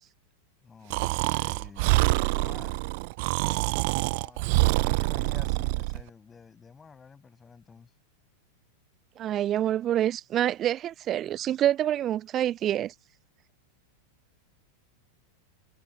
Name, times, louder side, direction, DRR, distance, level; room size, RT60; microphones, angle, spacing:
voice 1, 0.6-2.8 4.1-7.9, left 5 dB, 15° left, 7.5 m, -49 dB
Breathing, 0.9-6.0, right 27 dB, 50° right, 0.8 m, -26 dB
voice 2, 9.2-12.9, right 11 dB, 30° right, 0.3 m, -27 dB
figure-of-eight pair, 90°, 0 cm